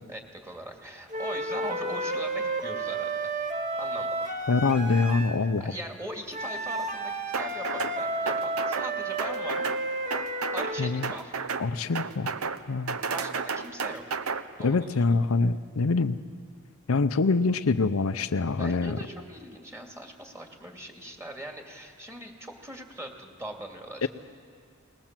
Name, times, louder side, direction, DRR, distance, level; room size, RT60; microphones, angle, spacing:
voice 1, 0.1-3.3 3.8-4.3 5.6-9.6 10.5-11.3 13.1-14.0 14.6-15.0 18.6-24.1, right 1 dB, 15° right, 2 dB, 2.4 m, -41 dB
sound 1, 1.1-5.4 6.3-11.0, right 2 dB, 35° right, 1.7 m, -32 dB
voice 2, 4.5-5.7 10.8-11.1 11.6-12.3 12.7-13.0 14.6-16.2 16.9-19.0 24.0-24.1, left 3 dB, 75° left, 9 dB, 0.6 m, -25 dB
sound 2, 7.3-8.0 8.3-8.9 9.2-9.8 10.1-10.7 11.0-11.7 12.0-12.6 12.9-14.4, right 5 dB, 85° right, 0.9 m, -32 dB
21.0 x 20.0 x 7.5 m, 2.1 s
head